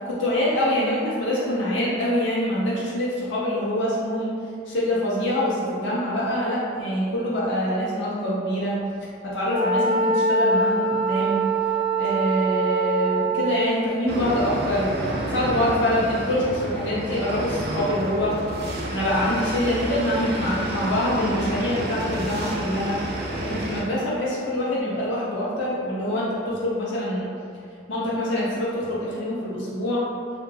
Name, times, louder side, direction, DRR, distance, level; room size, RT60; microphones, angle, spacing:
voice 1, 0.0-4.4 4.7-8.8 9.2-11.4 12.0-14.9 15.2-18.4 18.7-23.0 23.4-27.3 27.9-30.0, left 1 dB, 65° left, -7 dB, 0.5 m, -25 dB
Wind instrument woodwind instrument, 9.5-13.6, right 3 dB, 10° right, 0.7 m, -23 dB
sound 1, 14.1-23.8, right 1 dB, 55° right, 0.3 m, -30 dB
2.2 x 2.0 x 3.1 m, 2.3 s
head